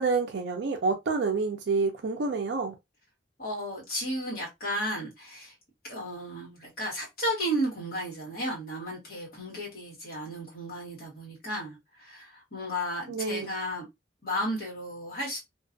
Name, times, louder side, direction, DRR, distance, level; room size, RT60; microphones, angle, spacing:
voice 1, 0.0-2.7 13.1-13.5, right 4 dB, 65° right, 0.4 m, -28 dB
voice 2, 3.4-5.5 5.8-13.8 14.2-15.4, equal, 50° left, 1.4 m, -33 dB
2.5 x 2.3 x 2.5 m
head